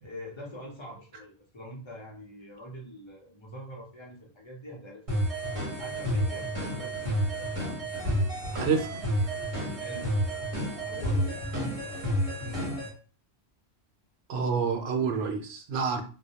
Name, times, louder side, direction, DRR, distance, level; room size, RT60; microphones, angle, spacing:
voice 1, 0.0-5.0 5.8-7.5 9.8-10.1 10.9-12.7, equal, 30° left, -2 dB, 0.6 m, -44 dB
sound 1, 5.1-12.9, equal, 35° right, 1.0 m, -30 dB
voice 2, 8.5-8.9 14.3-16.0, right 5 dB, 75° right, 4 dB, 0.8 m, -28 dB
2.2 x 2.1 x 2.8 m, 0.37 s
omnidirectional pair, 1.1 m